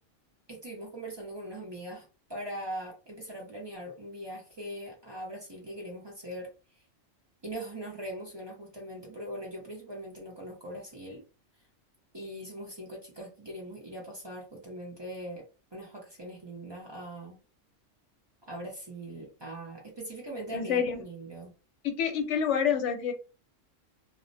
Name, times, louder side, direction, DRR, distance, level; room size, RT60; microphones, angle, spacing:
voice 1, 0.5-6.5 7.4-11.2 12.1-15.4 15.7-17.4 18.5-21.5, right 1 dB, 35° right, -2 dB, 0.4 m, -41 dB
voice 2, 20.5-21.0 21.8-23.1, left 7 dB, 70° left, 6 dB, 0.9 m, -27 dB
2.3 x 2.0 x 2.5 m, 0.34 s
omnidirectional pair, 1.3 m